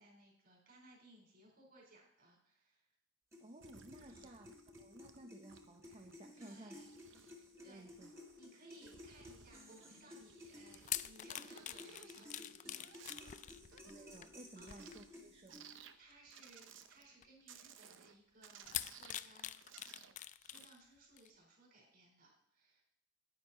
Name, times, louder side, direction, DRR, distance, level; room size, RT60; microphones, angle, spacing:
voice 1, 0.0-2.9 4.1-4.3 6.3-7.2 7.6-7.9 8.4-13.8 14.6-14.7 15.1-15.3 16.0-19.5 20.4-22.8, right 2 dB, 50° right, -1 dB, 4.4 m, -63 dB
sound 1, 3.3-15.9, left 1 dB, 15° right, 1.5 m, -57 dB
voice 2, 3.4-6.8 7.4-8.1 13.8-15.7, right 2 dB, 30° right, 4 dB, 0.6 m, -56 dB
sound 2, 3.6-5.2 5.5-6.2 6.5-8.5 8.9-11.1 11.4-15.1 15.5-16.0 16.3-17.2 17.5-18.2 18.4-20.2 20.5-20.7, right 7 dB, 70° right, 0.7 m, -60 dB
sound 3, 10.5-15.4 16.1-16.3 17.2-17.3 18.6-20.8 21.2-21.3, left 12 dB, 40° left, 0.3 m, -45 dB
9.7 x 9.5 x 4.3 m, 0.72 s
head